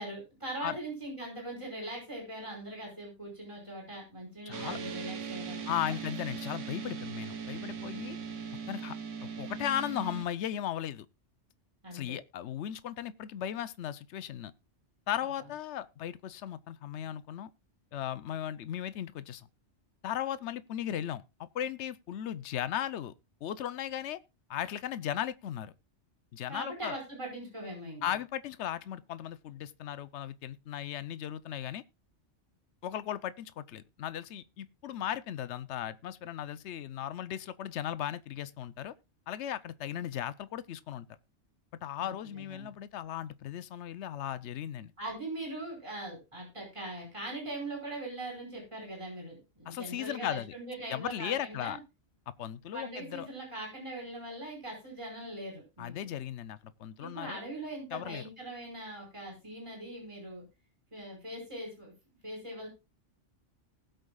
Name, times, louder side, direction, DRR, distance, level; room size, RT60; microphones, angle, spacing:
voice 1, 0.0-6.0 11.8-12.2 26.5-28.0 42.0-42.7 45.0-51.8 52.7-55.9 57.0-60.4 60.9-61.9 62.2-62.7, right 1 dB, 25° right, 5.2 m, -41 dB
voice 2, 4.5-4.8 5.7-8.2 8.7-9.0 9.2-11.1 11.9-14.5 15.1-17.5 17.9-19.5 20.0-23.1 23.4-24.2 24.5-25.7 26.3-27.0 28.0-31.8 32.8-38.9 39.3-41.1 41.8-44.9 49.7-50.5 50.9-51.8 52.4-53.3 55.8-57.4 57.9-58.2, left 10 dB, 70° left, 1.0 m, -36 dB
sound 1, 4.5-10.3, right 6 dB, 80° right, 1.4 m, -39 dB
19.5 x 7.9 x 2.3 m
omnidirectional pair, 1.2 m